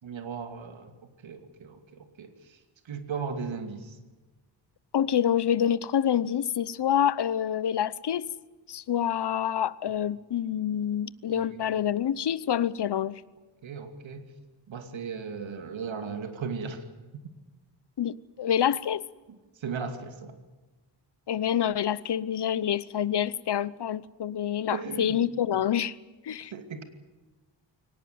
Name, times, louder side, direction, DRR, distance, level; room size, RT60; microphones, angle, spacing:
voice 1, 0.0-2.6 2.8-4.0 11.3-11.6 13.6-14.3 14.7-16.8 19.3-20.3 24.7-25.2 26.5-26.8, right 5 dB, 85° right, 7 dB, 2.7 m, -37 dB
voice 2, 4.9-8.3 8.7-13.2 18.0-19.0 21.3-25.9 26.2-26.5, left 9 dB, 60° left, 18 dB, 0.9 m, -27 dB
23.5 x 19.0 x 9.4 m, 1.2 s
wide cardioid pair, 115°, 45 cm